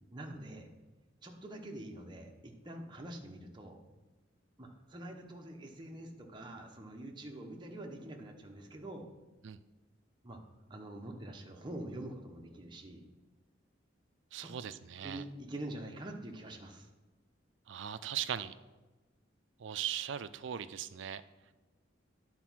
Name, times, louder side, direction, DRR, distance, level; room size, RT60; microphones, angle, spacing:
voice 1, 0.1-0.7 1.2-3.8 4.6-9.1 10.2-10.4 10.7-13.1 14.4-14.5 15.0-16.9, right 1 dB, 25° right, 2 dB, 0.8 m, -45 dB
voice 2, 14.3-15.2 17.7-18.5 19.6-21.2, right 10 dB, 70° right, 14 dB, 0.4 m, -39 dB
10.0 x 4.0 x 6.1 m, 1.2 s
head